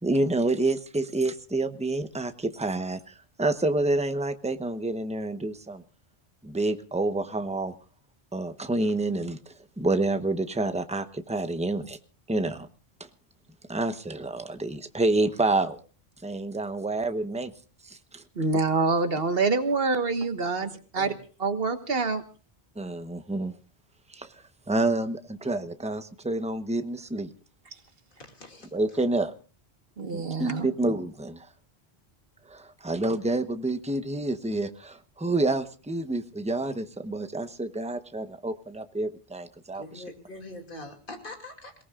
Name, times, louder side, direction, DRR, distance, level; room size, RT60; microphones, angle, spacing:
voice 1, 0.0-5.8 6.4-7.7 8.3-12.0 12.3-12.7 13.0-13.1 13.7-15.8 16.2-17.5 17.8-18.2 22.8-23.5 24.1-24.3 24.7-27.3 28.7-29.3 30.1-31.5 32.5-40.0, right 2 dB, 5° right, 9 dB, 0.9 m, -28 dB
voice 2, 18.3-21.1 21.4-22.2 30.0-30.7, right 4 dB, 65° right, 8 dB, 1.7 m, -26 dB
voice 3, 28.2-28.7 39.7-41.8, left 2 dB, 55° left, 3 dB, 2.8 m, -43 dB
28.0 x 18.5 x 2.4 m, 0.37 s
omnidirectional pair, 1.1 m